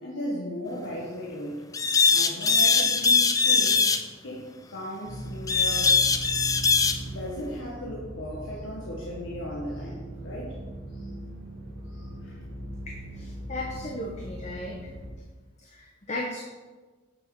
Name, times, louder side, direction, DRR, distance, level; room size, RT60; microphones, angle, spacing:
voice 1, 0.0-1.6 2.1-3.8 4.2-6.0 6.7-10.6 10.9-11.1 11.8-12.4, equal, 75° left, -4 dB, 1.3 m, -37 dB
sound 1, 1.7-4.0 5.5-7.0, left 5 dB, 15° left, 0.4 m, -21 dB
sound 2, 5.0-15.1, right 1 dB, 50° right, 2.1 m, -39 dB
voice 2, 12.9-14.8 15.6-16.4, left 1 dB, 35° left, -1 dB, 0.9 m, -36 dB
8.2 x 6.0 x 4.6 m, 1.3 s
head